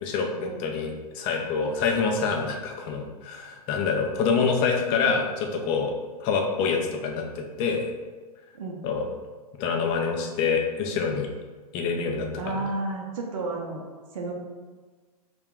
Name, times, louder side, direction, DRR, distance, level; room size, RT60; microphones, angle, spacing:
voice 1, 0.0-5.9 6.2-7.8 8.8-9.0 9.6-11.3 11.7-12.6, left 5 dB, 25° left, 2 dB, 0.4 m, -26 dB
voice 2, 12.4-13.8 14.1-14.3, right 3 dB, 60° right, -1 dB, 0.6 m, -32 dB
2.7 x 2.3 x 3.4 m, 1.4 s
figure-of-eight pair, 105°, 20 cm